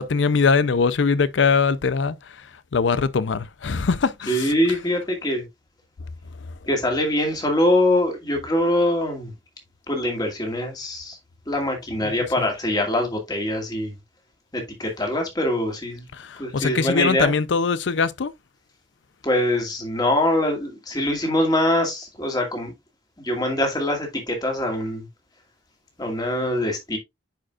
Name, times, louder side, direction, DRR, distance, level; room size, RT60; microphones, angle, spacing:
voice 1, 0.0-2.5 2.7-4.5 16.2-18.3, left 5 dB, 80° left, 0.5 m, -22 dB
voice 2, 4.3-5.5 6.7-9.3 9.9-11.2 11.5-14.0 14.5-16.1 16.4-17.3 19.2-22.7 23.2-25.1 26.0-27.0, left 1 dB, 20° left, 2.3 m, -23 dB
10.5 x 5.0 x 2.4 m
head